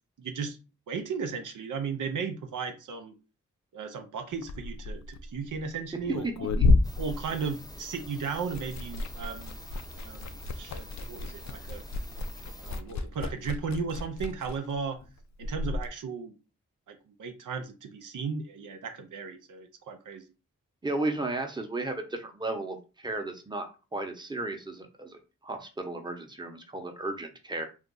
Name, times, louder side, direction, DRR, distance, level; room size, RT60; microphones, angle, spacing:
voice 1, 0.2-0.6 0.9-3.1 3.7-6.5 7.0-9.6 10.0-11.8 12.6-15.0 15.4-16.3 16.9-20.2, right 5 dB, 75° right, 6 dB, 0.6 m, -35 dB
Liquid, 4.3-8.0 8.3-15.9, left 3 dB, 60° left, 0.4 m, -31 dB
voice 2, 6.2-6.7 20.8-27.7, right 2 dB, 15° right, 4 dB, 0.8 m, -34 dB
sound 1, 6.8-12.8, left 1 dB, 10° left, 0.6 m, -46 dB
2.5 x 2.3 x 3.8 m, 0.31 s
cardioid pair, 40°, 31 cm